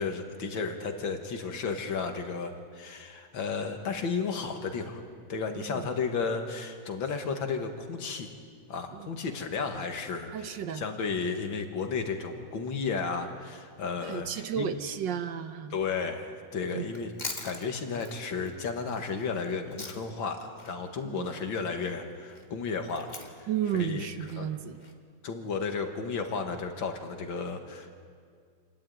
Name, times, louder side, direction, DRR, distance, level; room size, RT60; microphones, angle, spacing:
voice 1, 0.0-5.0 5.3-8.3 8.7-14.7 15.7-17.1 17.4-23.1 23.7-24.1 24.4-24.5 25.2-27.9, left 5 dB, 75° left, 5 dB, 2.4 m, -33 dB
voice 2, 5.5-5.9 8.9-9.1 10.3-10.8 14.0-15.8 16.7-16.9 21.0-21.3 23.5-24.8, right 9 dB, 70° right, 9 dB, 1.6 m, -33 dB
Chewing mastication, 16.8-20.3 20.6-24.9, left 3 dB, 25° left, 1.6 m, -43 dB
27.5 x 12.5 x 9.3 m, 2.1 s
omnidirectional pair, 2.1 m